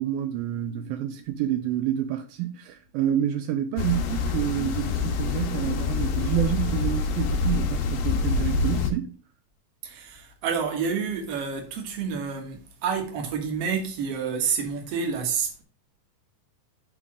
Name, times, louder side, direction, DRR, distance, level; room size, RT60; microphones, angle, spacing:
voice 1, 0.0-9.2, right 11 dB, 90° right, 2.1 m, -28 dB
sound 1, 3.8-8.9, left 4 dB, 70° left, 2.4 m, -26 dB
voice 2, 9.8-15.6, right 6 dB, 55° right, 1.8 m, -29 dB
6.8 x 3.6 x 6.1 m
omnidirectional pair, 4.7 m